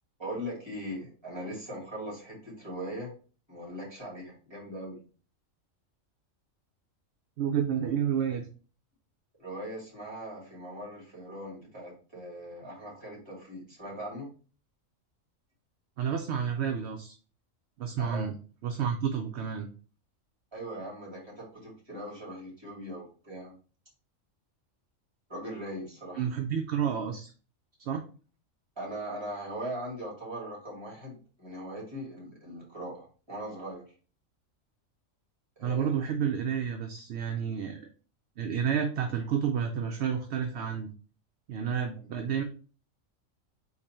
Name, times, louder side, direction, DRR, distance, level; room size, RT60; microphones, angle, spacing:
voice 1, 0.2-3.1 3.5-5.0 9.4-14.3 18.0-18.3 20.5-23.6 25.3-26.3 28.8-33.9 35.6-36.0 42.0-42.1, right 1 dB, 20° right, -4 dB, 2.3 m, -40 dB
voice 2, 7.4-8.5 16.0-17.2 17.8-18.3 18.6-19.7 26.2-27.3 27.9-28.0 35.6-37.8 38.4-40.9 41.5-42.4, right 7 dB, 65° right, 4 dB, 0.7 m, -30 dB
4.0 x 2.9 x 4.2 m, 0.39 s
omnidirectional pair, 1.4 m